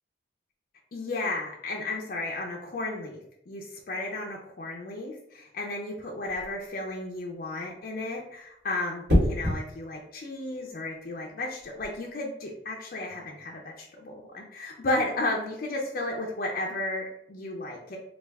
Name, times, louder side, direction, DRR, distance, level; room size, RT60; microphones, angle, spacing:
voice 1, 0.9-3.2 3.5-18.0, left 2 dB, 50° left, -1 dB, 0.4 m, -33 dB
sound 1, 6.2-6.6 9.1-9.6 11.6-11.9, left 1 dB, 65° right, 1.4 m, -24 dB
3.3 x 2.3 x 3.4 m, 0.75 s
head